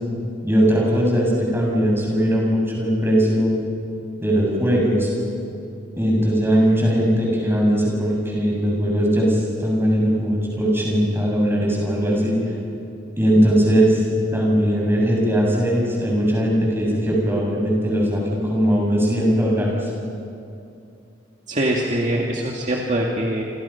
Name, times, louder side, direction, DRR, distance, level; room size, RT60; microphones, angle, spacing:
voice 1, 0.4-3.6 4.2-5.1 6.0-12.4 13.2-14.1 14.3-19.9, equal, 15° right, -3 dB, 7.5 m, -19 dB
voice 2, 21.5-23.4, right 1 dB, 40° right, -2 dB, 2.2 m, -23 dB
29.0 x 27.0 x 5.9 m, 2.5 s
head